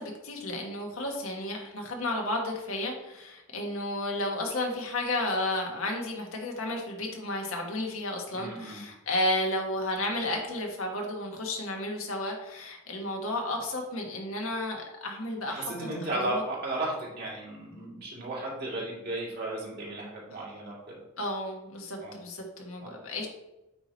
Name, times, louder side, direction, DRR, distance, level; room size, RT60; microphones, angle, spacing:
voice 1, 0.0-15.9 16.3-16.4 21.2-23.3, left 1 dB, 90° left, 1 dB, 1.5 m, -32 dB
voice 2, 8.3-8.8 15.5-20.9 22.0-22.2 22.8-22.9, right 2 dB, 50° right, -5 dB, 2.4 m, -35 dB
8.7 x 3.0 x 4.1 m, 0.95 s
head